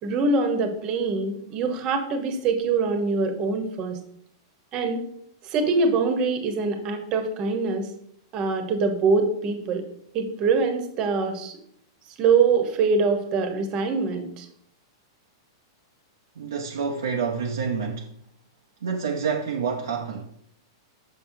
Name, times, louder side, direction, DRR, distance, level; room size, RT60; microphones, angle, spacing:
voice 1, 0.0-4.0 4.7-5.0 5.4-7.9 8.3-9.8 10.1-11.5 12.2-14.5, right 4 dB, 40° right, 1.1 m, -24 dB
voice 2, 16.4-18.1 18.8-20.2, right 6 dB, 75° right, 0.6 m, -28 dB
6.3 x 5.7 x 2.8 m
hypercardioid pair, 105°, 2 cm